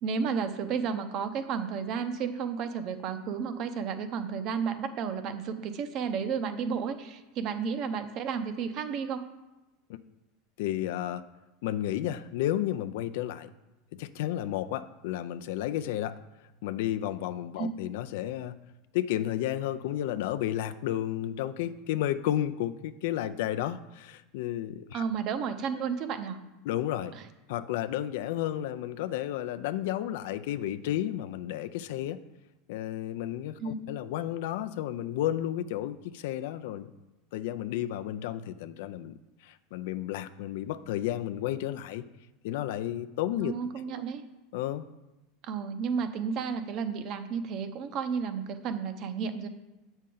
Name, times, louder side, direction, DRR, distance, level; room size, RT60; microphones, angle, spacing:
voice 1, 0.0-9.3 17.6-17.7 24.9-26.4 27.1-27.3 33.6-33.8 43.4-44.2 45.4-49.5, right 6 dB, 50° right, 9 dB, 0.7 m, -32 dB
voice 2, 10.6-11.2 11.6-13.5 14.0-16.2 16.6-18.6 18.9-25.0 26.6-27.1 27.5-32.2 32.7-36.9 37.3-39.2 39.4-42.0 42.4-43.6 43.9-44.0 44.5-44.9, left 12 dB, 70° left, 12 dB, 0.3 m, -32 dB
7.4 x 5.3 x 3.8 m, 1.0 s
hypercardioid pair, 105°, 0 cm